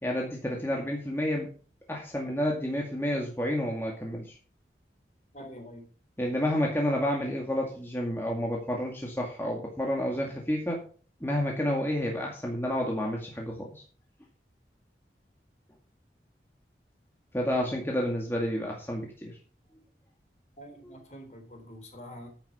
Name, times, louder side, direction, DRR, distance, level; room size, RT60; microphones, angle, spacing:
voice 1, 0.0-1.5 1.9-4.3 6.2-10.8 11.2-13.7 17.3-19.4, left 1 dB, 15° left, -1 dB, 2.1 m, -30 dB
voice 2, 5.3-5.8 20.6-22.3, equal, 40° left, 3 dB, 4.0 m, -45 dB
10.5 x 8.8 x 5.5 m, 0.41 s
head